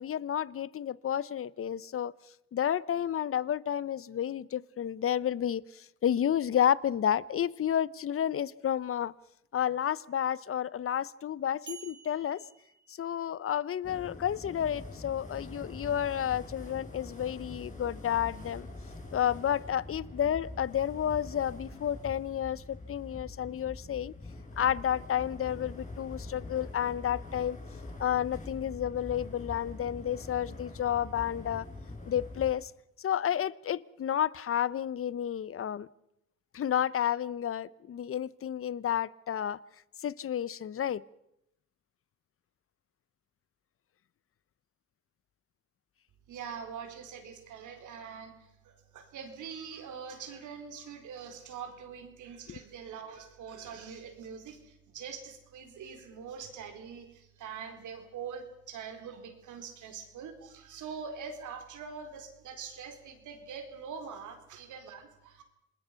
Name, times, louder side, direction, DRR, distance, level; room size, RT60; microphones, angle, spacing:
voice 1, 0.0-2.1 2.5-9.1 9.5-12.4 12.9-18.7 19.1-24.1 24.6-27.6 28.0-31.7 32.1-32.7 33.0-35.9 36.5-39.6 40.0-41.0 52.5-52.6, left 10 dB, 45° left, 0.8 m, -31 dB
sound 1, 11.7-13.7, right 7 dB, 35° right, 5.2 m, -51 dB
sound 2, 13.8-32.5, left 2 dB, 25° left, 6.0 m, -44 dB
voice 2, 46.3-65.4, right 6 dB, 80° right, 4.3 m, -44 dB
27.5 x 20.5 x 5.8 m
cardioid pair, 90°, 30 cm